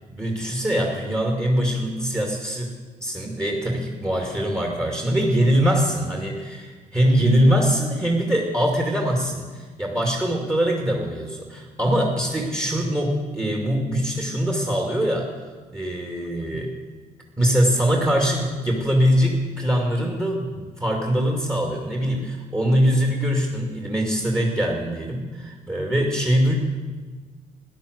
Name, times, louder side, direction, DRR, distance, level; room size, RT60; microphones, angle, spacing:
voice 1, 0.1-2.7 3.0-15.3 15.7-16.7 17.4-26.5, equal, 20° right, 0 dB, 2.5 m, -22 dB
13.5 x 10.5 x 8.1 m, 1.4 s
cardioid pair, 80°, 15 cm